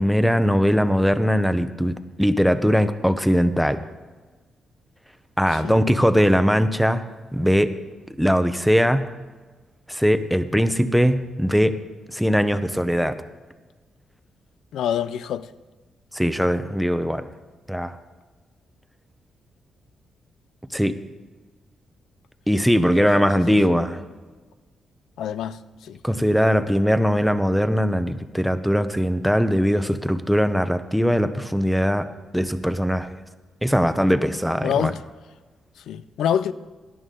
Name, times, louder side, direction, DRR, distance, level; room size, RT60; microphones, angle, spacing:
voice 1, 0.0-3.8 5.4-7.0 7.3-7.7 8.2-9.1 9.9-11.8 12.1-13.2 16.1-17.2 17.7-18.0 20.7-21.0 22.5-24.0 26.0-32.1 32.3-33.1 33.6-34.9, equal, ahead, 0.8 m, -20 dB
voice 2, 5.5-5.8 14.7-15.5 23.2-23.9 25.2-26.0 34.6-35.0 35.8-36.5, left 9 dB, 85° left, 0.5 m, -27 dB
17.5 x 11.0 x 3.9 m
cardioid pair, 90°, 0 cm